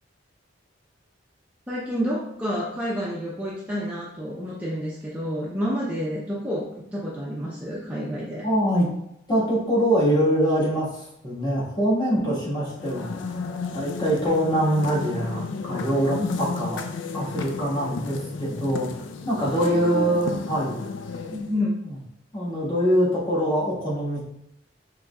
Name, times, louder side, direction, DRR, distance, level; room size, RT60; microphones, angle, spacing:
voice 1, 1.7-8.4 12.2-12.3 16.2-16.3 19.5-20.2 21.3-21.7, equal, 10° right, -7 dB, 0.5 m, -29 dB
voice 2, 8.4-8.9 9.3-13.4 13.7-16.8 17.1-20.8 21.9-22.0 22.3-24.2, equal, 25° left, -7 dB, 1.4 m, -24 dB
sound 1, 12.7-21.6, left 4 dB, 75° left, 0.4 m, -33 dB
5.0 x 3.0 x 2.3 m, 0.79 s
head